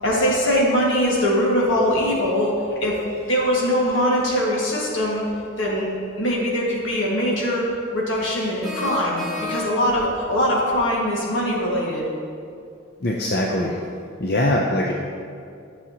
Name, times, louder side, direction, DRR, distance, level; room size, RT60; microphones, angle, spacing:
voice 1, 0.0-2.5 2.8-3.0 3.3-5.2 5.6-5.9 6.2-12.1, equal, 75° left, -4 dB, 1.8 m, -22 dB
sound 1, 8.6-10.0, left 3 dB, ahead, 1.9 m, -31 dB
voice 2, 13.0-13.8 14.2-14.9, left 1 dB, 50° left, -1 dB, 0.6 m, -22 dB
11.0 x 7.0 x 2.9 m, 2.4 s
head